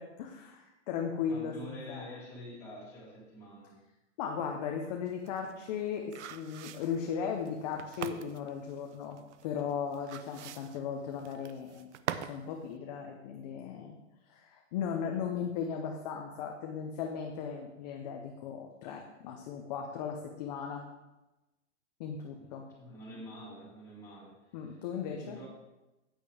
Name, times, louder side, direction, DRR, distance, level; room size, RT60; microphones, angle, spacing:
voice 1, 0.0-2.1 4.2-11.9 12.3-14.0 14.3-20.8 22.0-22.6 24.5-25.4, left 7 dB, 35° left, 2 dB, 0.8 m, -37 dB
voice 2, 1.3-3.8 22.4-24.8 25.2-25.5, left 1 dB, 5° left, -9 dB, 3.7 m, -47 dB
sound 1, 5.1-12.4 12.7-12.8, right 10 dB, 70° right, 0.7 m, -43 dB
10.0 x 9.1 x 3.5 m, 1.0 s
hypercardioid pair, 160°, 37 cm